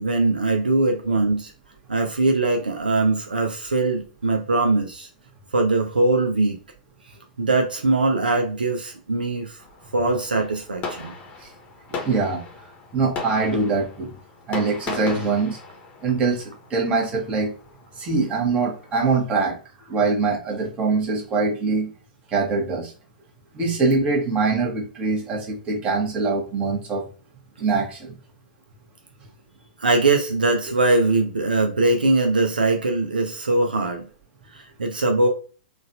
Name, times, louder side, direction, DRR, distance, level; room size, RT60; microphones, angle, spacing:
voice 1, 0.0-1.5 1.9-5.1 5.5-6.6 7.4-9.6 9.9-11.1 29.8-34.0 34.5-35.3, right 2 dB, 80° right, 0.6 m, -21 dB
Fireworks, 9.6-18.9, left 4 dB, 25° left, 0.9 m, -38 dB
voice 2, 11.9-12.4 12.9-14.1 14.5-15.6 16.0-17.5 18.0-19.6 19.9-21.9 22.3-22.9 23.5-27.1 27.6-28.1, right 4 dB, 25° right, 1.2 m, -23 dB
3.9 x 2.4 x 2.5 m
figure-of-eight pair, 105°, 5 cm